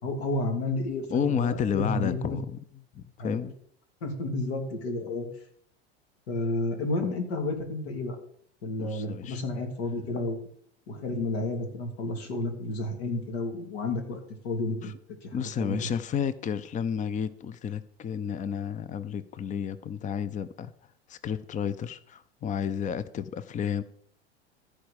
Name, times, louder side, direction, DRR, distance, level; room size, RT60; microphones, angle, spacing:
voice 1, 0.0-2.4 3.2-3.4 4.0-5.3 6.3-8.2 8.6-10.5 10.9-14.9 15.2-15.3 15.6-15.9, left 2 dB, 65° left, 2.8 m, -31 dB
voice 2, 1.1-2.6 2.9-3.5 8.8-9.4 14.8-14.9 15.3-20.7 21.1-23.8, left 7 dB, 25° left, 0.7 m, -31 dB
14.5 x 5.0 x 6.6 m
hypercardioid pair, 85°, 33 cm